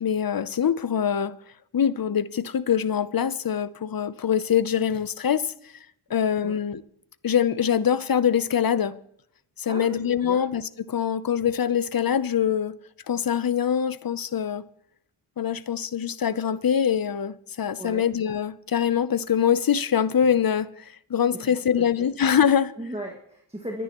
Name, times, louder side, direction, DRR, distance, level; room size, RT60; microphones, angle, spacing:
voice 1, 0.0-1.3 1.7-5.7 6.1-6.8 7.2-9.0 9.6-12.7 13.1-14.6 15.4-22.7, left 8 dB, 45° left, 0.7 m, -24 dB
voice 2, 9.7-10.4 17.8-18.1 21.3-22.2 22.8-23.8, equal, 10° right, 1.9 m, -37 dB
28.5 x 10.0 x 3.0 m
cardioid pair, 45°, 48 cm